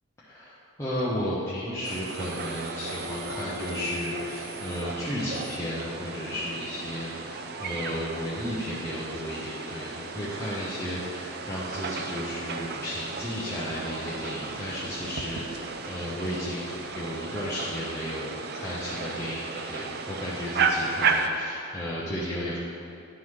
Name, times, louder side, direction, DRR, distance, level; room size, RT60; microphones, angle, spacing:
voice 1, 0.2-22.6, equal, 15° left, -9 dB, 0.8 m, -34 dB
sound 1, 1.8-21.3, right 4 dB, 50° right, 0.4 m, -34 dB
Bowed string instrument, 2.8-7.7, left 4 dB, 80° right, 1.2 m, -44 dB
10.5 x 3.9 x 4.8 m, 2.7 s
head